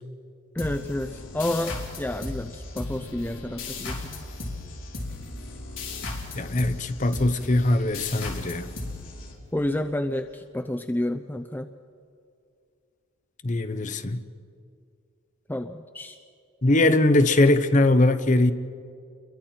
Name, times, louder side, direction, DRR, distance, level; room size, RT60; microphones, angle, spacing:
voice 1, 0.5-4.2 9.5-11.7 15.5-16.2, left 1 dB, 10° left, 0.4 m, -30 dB
sound 1, 0.6-9.8, left 2 dB, 65° left, 3.2 m, -36 dB
voice 2, 6.3-8.7 13.4-14.2 16.6-18.5, left 2 dB, 35° left, 0.8 m, -21 dB
29.0 x 22.0 x 4.4 m
head